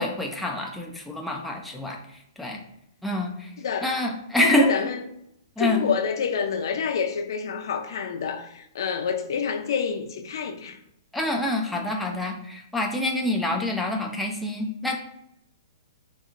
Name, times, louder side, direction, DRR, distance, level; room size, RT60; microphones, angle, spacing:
voice 1, 0.0-2.0 2.4-2.6 3.0-3.5 3.8-4.7 5.6-5.9 11.1-15.0, left 1 dB, ahead, 0.4 m, -26 dB
voice 2, 3.6-4.0 4.4-5.0 5.6-10.8, left 6 dB, 70° left, 0.5 m, -28 dB
4.1 x 2.6 x 2.5 m
hypercardioid pair, 150°, 2 cm